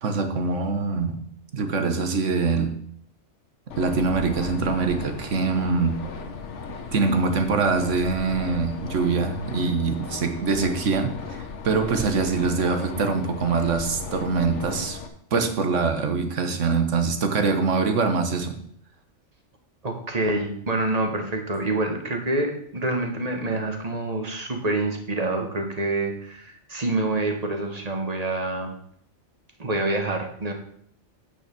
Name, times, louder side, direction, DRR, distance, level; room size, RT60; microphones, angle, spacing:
voice 1, 0.0-1.2 1.5-2.8 3.7-6.0 6.9-15.0 15.3-18.6, right 4 dB, 80° right, 6 dB, 1.5 m, -24 dB
sound 1, 3.7-15.1, left 5 dB, 75° left, 1.3 m, -36 dB
voice 2, 19.8-28.7 29.6-30.5, right 2 dB, 30° right, 3 dB, 1.6 m, -27 dB
9.3 x 6.3 x 6.1 m, 0.66 s
omnidirectional pair, 1.3 m